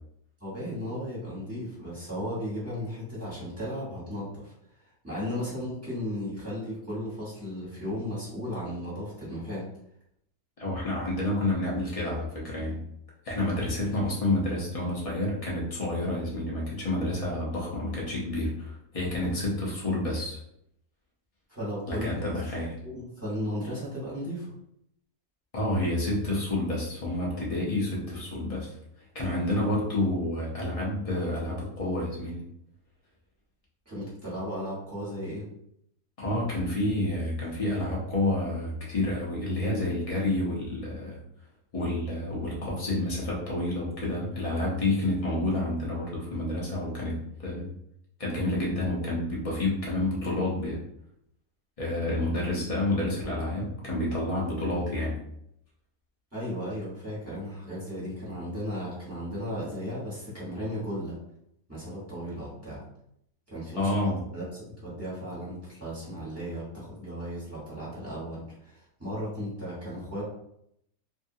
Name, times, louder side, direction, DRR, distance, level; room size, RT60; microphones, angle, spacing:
voice 1, 0.4-4.5 5.0-9.7 21.5-22.1 22.8-24.5 33.8-35.5 56.3-61.2 61.7-62.8 63.5-70.2, equal, 10° right, -8 dB, 1.1 m, -35 dB
voice 2, 10.6-12.8 13.2-20.4 21.9-22.8 25.5-28.8 29.1-32.4 36.2-41.2 41.7-47.7 48.2-50.8 51.8-55.2 63.8-64.2, left 1 dB, 40° left, -5 dB, 0.5 m, -29 dB
2.7 x 2.6 x 2.7 m, 0.75 s
omnidirectional pair, 1.7 m